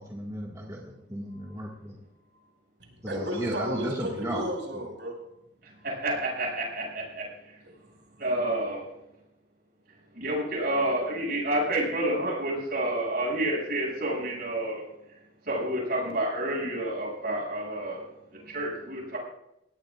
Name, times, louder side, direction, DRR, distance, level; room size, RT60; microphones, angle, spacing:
voice 1, 0.0-2.0 3.0-4.5, right 1 dB, 20° right, -3 dB, 1.9 m, -35 dB
voice 2, 2.8-5.1 7.6-8.2, equal, 70° right, 1 dB, 5.9 m, -34 dB
voice 3, 5.6-7.6 8.2-8.9 10.1-14.9 15.5-18.1 18.3-19.2, right 1 dB, 55° right, -3 dB, 7.3 m, -29 dB
21.0 x 17.5 x 2.5 m, 0.84 s
head